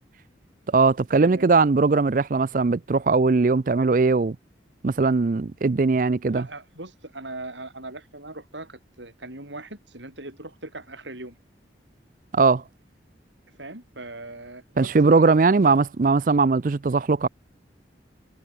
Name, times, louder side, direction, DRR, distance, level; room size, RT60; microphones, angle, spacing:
voice 1, 0.7-4.4 4.8-6.4 12.3-12.6 14.8-17.3, right 4 dB, 45° right, 0.4 m, -20 dB
voice 2, 6.3-11.4 13.5-15.8, right 2 dB, 80° right, 7.5 m, -40 dB
head